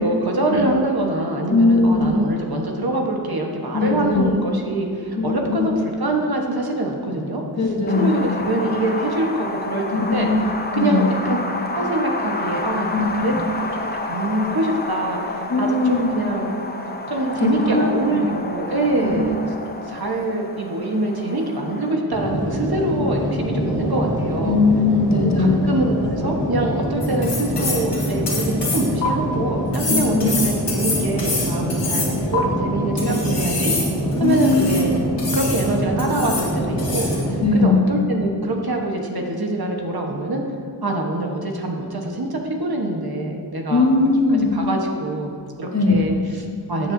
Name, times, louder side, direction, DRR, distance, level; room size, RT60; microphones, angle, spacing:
voice 1, 0.0-7.4 7.9-10.3 10.7-11.4 11.7-16.6 17.1-19.4 19.7-24.6 25.4-33.7 34.2-35.0 35.3-40.4 40.8-44.1 44.5-46.9, right 2 dB, 55° right, 1 dB, 1.3 m, -24 dB
voice 2, 1.5-2.2 3.7-4.3 5.2-5.7 7.6-8.2 9.9-10.4 10.7-11.1 12.9-13.5 15.5-16.3 17.4-17.9 18.3-18.4 19.0-19.2 24.4-25.6 29.9-30.3 34.2-34.7 37.4-37.9 43.7-44.5 45.7-45.9, left 3 dB, 40° left, 0 dB, 1.3 m, -19 dB
Wind, 7.9-21.9, left 2 dB, 20° left, 0.7 m, -30 dB
sound 1, 22.1-37.4, equal, 10° right, 1.9 m, -25 dB
sound 2, 27.0-29.1 29.7-32.4 33.0-34.8 35.2-35.7 36.0-36.5 36.8-37.2, left 3 dB, 70° left, 2.3 m, -26 dB
13.0 x 7.3 x 2.7 m, 2.2 s
wide cardioid pair, 65°, 43 cm